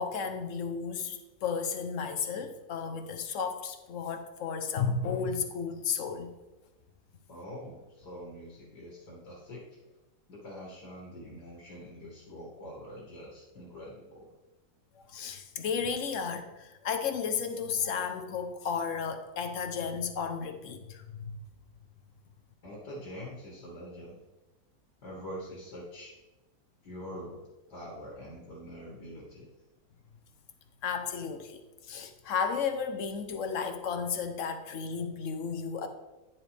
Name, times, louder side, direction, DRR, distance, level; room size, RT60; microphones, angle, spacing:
voice 1, 0.0-6.3 14.9-21.4 30.8-35.9, left 6 dB, 55° left, 7 dB, 1.0 m, -33 dB
voice 2, 7.3-9.6 10.3-14.3 22.6-24.2 25.0-26.1 26.8-27.4 27.7-29.5, equal, 80° left, -4 dB, 2.7 m, -44 dB
10.0 x 7.1 x 3.4 m, 1.1 s
omnidirectional pair, 1.8 m